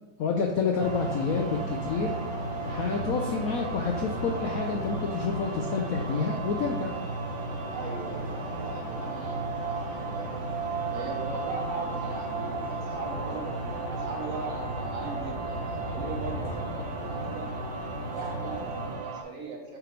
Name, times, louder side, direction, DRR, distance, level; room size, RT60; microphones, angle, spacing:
voice 1, 0.2-2.2 2.7-7.0, left 5 dB, 75° left, 1 dB, 0.8 m, -29 dB
sound 1, 0.8-18.9, equal, 40° left, 2.0 m, -36 dB
sound 2, 0.8-19.2, right 5 dB, 75° right, 1.5 m, -37 dB
voice 2, 7.7-10.4 10.9-13.6 13.9-17.5 18.1-19.8, right 3 dB, 60° right, 0 dB, 0.9 m, -39 dB
7.8 x 3.7 x 3.2 m, 1.1 s
omnidirectional pair, 2.1 m